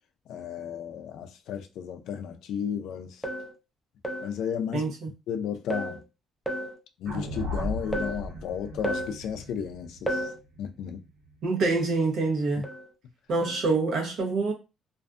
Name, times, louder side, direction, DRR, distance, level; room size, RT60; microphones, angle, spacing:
voice 1, 0.3-3.2 4.2-4.9 5.3-6.0 7.0-10.3 10.6-11.0, left 8 dB, 70° left, 0.4 m, -33 dB
sound 1, 3.2-3.5 4.0-4.4 5.7-6.0 6.5-6.8 7.9-8.2 8.8-9.2 10.1-10.4 12.6-12.9 13.4-13.6, right 1 dB, ahead, 0.4 m, -32 dB
voice 2, 4.7-5.1 11.4-12.6 13.3-14.5, right 3 dB, 55° right, 0.8 m, -26 dB
sound 2, 7.0-11.3, equal, 75° right, 1.1 m, -36 dB
2.5 x 2.3 x 2.4 m
cardioid pair, 155°, 0 cm